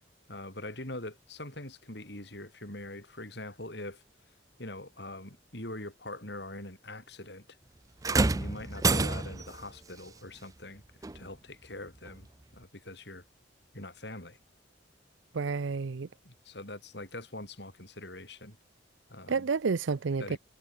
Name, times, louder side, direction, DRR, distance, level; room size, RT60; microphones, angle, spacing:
voice 1, 0.3-4.0 4.6-7.4 8.1-10.8 11.1-13.2 13.7-14.4 16.2-18.6 19.1-19.5 20.2-20.4, left 1 dB, 60° left, 6.5 m, -43 dB
sound 1, 8.0-9.6 11.0-11.2 12.1-12.2, right 3 dB, 20° right, 0.4 m, -27 dB
voice 2, 15.3-16.1 19.3-20.4, right 4 dB, 80° right, 0.6 m, -30 dB
head